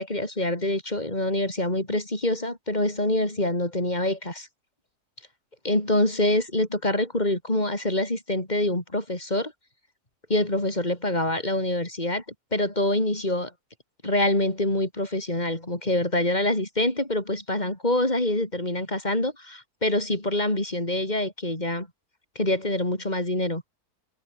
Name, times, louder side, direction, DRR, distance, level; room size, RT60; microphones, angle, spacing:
voice 1, 0.0-4.5 5.6-9.5 10.3-12.2 12.5-13.5 14.0-21.9 22.4-23.6, left 1 dB, 25° left, 5.5 m, -25 dB
omnidirectional pair, 1.6 m